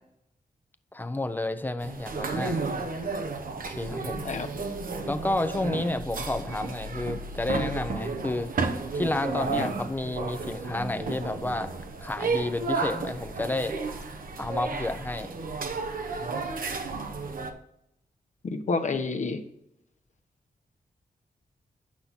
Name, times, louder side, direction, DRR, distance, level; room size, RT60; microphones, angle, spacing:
voice 1, 0.9-2.6 3.6-4.3 5.1-8.5 8.9-11.7 12.0-13.8 14.4-15.3, left 2 dB, 10° left, 9 dB, 0.7 m, -30 dB
sound 1, 1.8-17.5, right 4 dB, 65° right, 1.0 m, -32 dB
voice 2, 18.4-19.4, left 4 dB, 55° left, 6 dB, 1.0 m, -29 dB
8.7 x 5.8 x 4.0 m, 0.77 s
cardioid pair, 85°, 15 cm